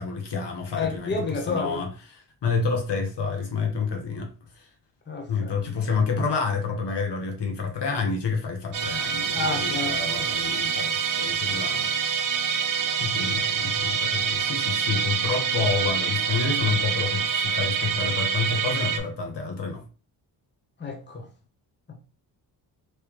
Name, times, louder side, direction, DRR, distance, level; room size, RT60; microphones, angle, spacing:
voice 1, 0.0-4.7 5.3-11.9 13.0-19.8, left 4 dB, 55° left, 1.1 m, -29 dB
voice 2, 0.8-1.8 5.1-5.5 9.3-10.0 10.2-10.4 13.8-14.2 20.8-21.3, left 3 dB, 20° left, 1.0 m, -30 dB
Musical instrument, 8.7-19.0, right 6 dB, 40° right, 0.7 m, -26 dB
3.2 x 3.2 x 3.0 m
cardioid pair, 65°, 50 cm